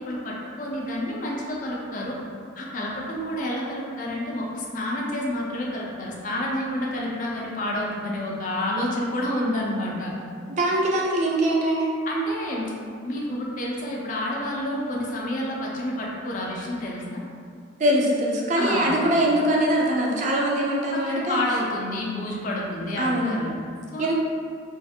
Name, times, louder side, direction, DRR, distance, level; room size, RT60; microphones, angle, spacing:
voice 1, 0.0-2.2 2.6-10.1 12.1-12.7 13.0-17.2 18.6-18.9 20.9-23.5 23.9-24.1, left 1 dB, 40° left, -3 dB, 0.4 m, -29 dB
voice 2, 10.5-11.9 17.8-21.4 23.0-23.4 24.0-24.1, right 1 dB, 35° right, -2 dB, 0.3 m, -22 dB
2.5 x 2.4 x 2.6 m, 2.3 s
head